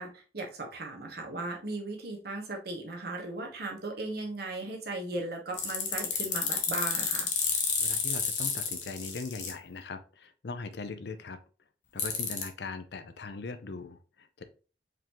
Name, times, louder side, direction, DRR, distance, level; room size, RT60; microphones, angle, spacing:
voice 1, 0.0-7.3, right 2 dB, 60° right, 1 dB, 1.2 m, -37 dB
sound 1, 5.5-9.5 12.0-12.5, left 6 dB, 45° left, 1.0 m, -30 dB
voice 2, 7.8-11.4 11.9-14.4, left 3 dB, 65° left, 9 dB, 0.6 m, -40 dB
4.8 x 3.7 x 3.0 m, 0.36 s
head